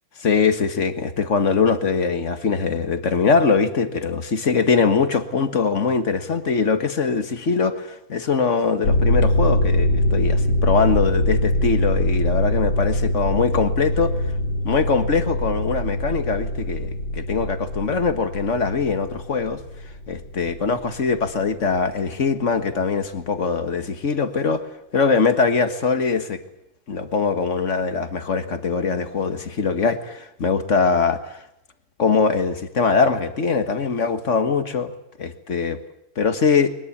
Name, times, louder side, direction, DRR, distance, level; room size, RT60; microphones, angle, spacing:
voice 1, 0.2-14.2 14.6-19.6 20.1-24.7 24.9-26.4 26.9-31.4 32.0-34.9 35.2-35.8 36.1-36.8, left 5 dB, 40° left, 9 dB, 1.6 m, -22 dB
sound 1, 8.8-20.9 21.3-21.4, left 1 dB, 55° left, 3.9 m, -23 dB
21.5 x 20.5 x 8.6 m, 0.80 s
omnidirectional pair, 2.3 m